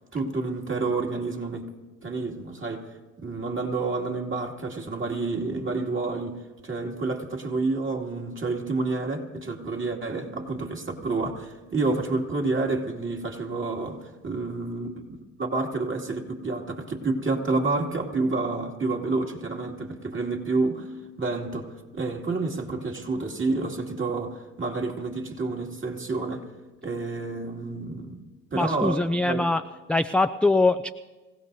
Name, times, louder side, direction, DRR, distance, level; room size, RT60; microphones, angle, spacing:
voice 1, 0.1-1.6 2.0-2.9 3.2-20.9 21.2-26.5 26.8-28.2 28.5-29.4, right 3 dB, 35° right, 1 dB, 2.5 m, -29 dB
voice 2, 28.5-29.6 29.9-30.9, left 2 dB, 5° left, 9 dB, 0.3 m, -22 dB
25.5 x 16.5 x 2.7 m, 1.3 s
hypercardioid pair, 55°, 36 cm